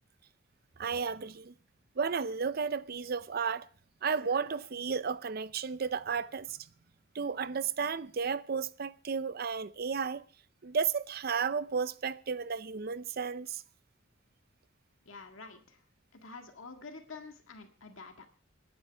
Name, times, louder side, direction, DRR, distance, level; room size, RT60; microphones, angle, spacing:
voice 1, 0.8-1.5 2.0-3.6 4.0-6.6 7.1-10.2 10.6-13.6, right 6 dB, 50° right, 0.6 m, -33 dB
voice 2, 15.1-15.8 16.2-18.3, left 4 dB, 80° left, 1.8 m, -48 dB
25.0 x 9.7 x 3.4 m
head